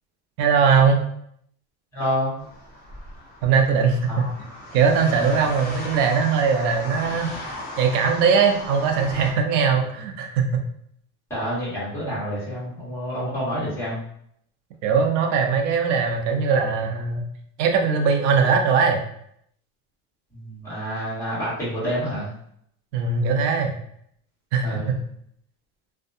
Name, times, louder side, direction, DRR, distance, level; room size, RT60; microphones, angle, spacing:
voice 1, 0.4-1.0 3.4-4.3 4.7-10.6 14.8-17.2 17.6-19.0 22.9-23.8 24.5-25.0, right 5 dB, 60° right, 3 dB, 0.6 m, -20 dB
voice 2, 1.9-2.3 4.1-4.3 11.3-14.0 20.3-22.3 24.6-24.9, equal, 5° left, -10 dB, 1.3 m, -28 dB
sound 1, 2.4-9.3, left 1 dB, 25° left, 0.7 m, -37 dB
2.6 x 2.2 x 2.5 m, 0.70 s
supercardioid pair, 150°, 42 cm